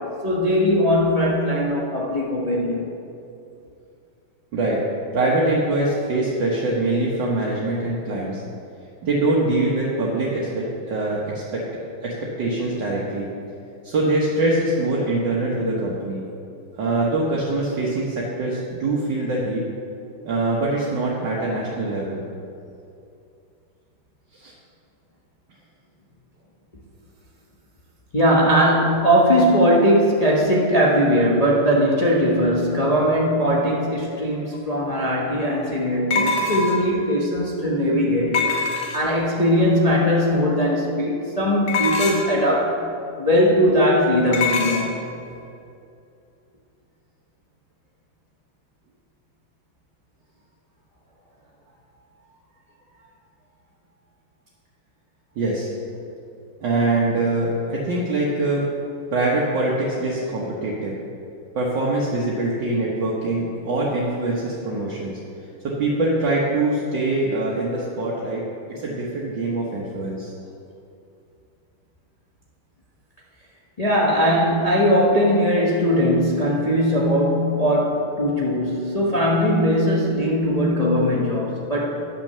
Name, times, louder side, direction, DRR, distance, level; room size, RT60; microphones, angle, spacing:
voice 1, 0.0-2.9 28.1-38.5 38.7-42.8 43.2-45.0 73.8-82.0, equal, 30° left, -4 dB, 0.8 m, -20 dB
voice 2, 5.1-8.4 9.0-11.6 12.0-13.3 13.8-16.3 16.8-19.7 20.3-22.2 24.3-24.5 55.4-55.7 56.6-58.7 59.1-60.9 61.6-65.2 65.6-68.4 68.7-70.3, right 2 dB, 60° right, -5 dB, 1.8 m, -23 dB
sound 1, 34.5-34.6 36.1-36.9 38.3-39.2 41.7-42.4 44.3-44.9, left 4 dB, 50° left, 1.4 m, -23 dB
10.5 x 6.0 x 6.7 m, 2.6 s
omnidirectional pair, 2.3 m